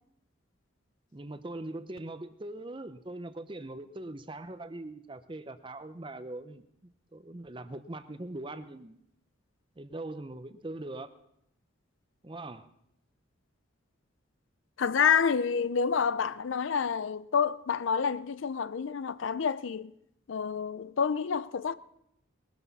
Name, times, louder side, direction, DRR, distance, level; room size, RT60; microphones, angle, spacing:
voice 1, 1.1-6.6 7.1-9.0 9.8-11.1 12.2-12.7, right 2 dB, 25° right, 0.7 m, -41 dB
voice 2, 14.8-19.9 20.3-21.7, left 6 dB, 65° left, 0.5 m, -28 dB
20.5 x 13.0 x 4.1 m
head